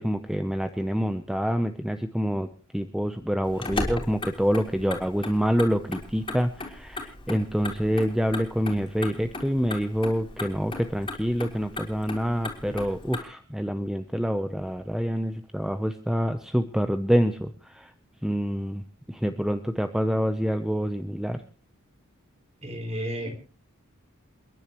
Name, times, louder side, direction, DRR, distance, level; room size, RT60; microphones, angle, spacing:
voice 1, 0.0-2.5 2.7-17.9 18.2-18.8 19.1-21.4, equal, 5° right, 8 dB, 0.7 m, -26 dB
Motor vehicle (road), 3.4-13.2, left 2 dB, 25° left, 3.4 m, -37 dB
voice 2, 22.6-23.4, equal, 30° right, 5 dB, 3.6 m, -32 dB
29.5 x 10.5 x 3.1 m, 0.34 s
head